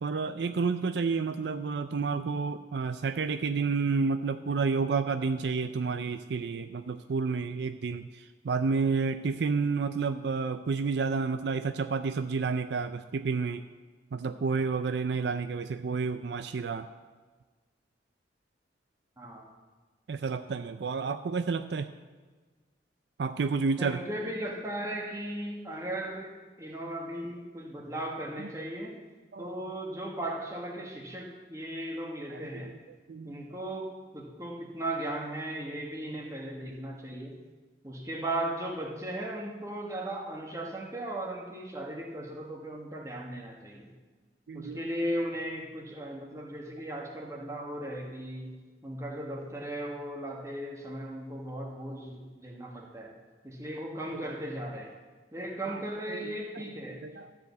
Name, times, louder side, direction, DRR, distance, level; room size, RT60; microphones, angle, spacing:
voice 1, 0.0-13.6 14.1-16.9 20.1-21.9 23.2-24.1 29.3-29.5 32.3-32.6 33.1-33.4 44.5-44.8 54.1-54.2 55.7-55.8 56.1-56.6 57.0-57.3, right 4 dB, 70° right, 10 dB, 0.4 m, -30 dB
voice 2, 23.8-26.3 26.6-28.9 29.4-32.7 33.2-33.9 34.1-37.4 37.8-43.9 44.5-48.6 48.8-53.1 53.4-54.9 55.3-57.0, right 1 dB, 15° right, -1 dB, 1.7 m, -37 dB
13.0 x 5.0 x 8.1 m, 1.4 s
head